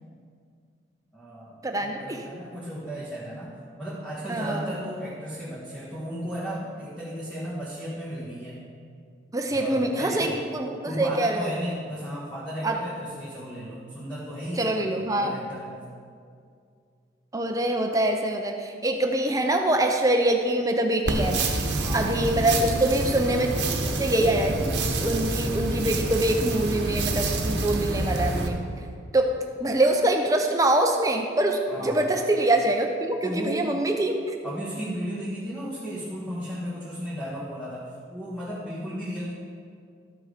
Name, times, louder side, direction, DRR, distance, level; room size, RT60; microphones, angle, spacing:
voice 1, 1.1-8.7 9.5-10.4 10.8-15.8 21.8-22.2 31.7-32.0 33.2-33.7 34.4-39.3, equal, 5° left, -9 dB, 1.5 m, -35 dB
voice 2, 1.6-2.3 4.3-4.7 9.3-11.5 12.6-12.8 14.6-15.4 17.3-21.5 21.9-23.5 24.0-24.6 25.0-28.6 29.1-34.4, right 1 dB, 20° right, 3 dB, 0.6 m, -24 dB
sound 1, 21.1-28.5, right 2 dB, 65° right, 1.0 m, -27 dB
13.0 x 6.1 x 5.0 m, 2.2 s
head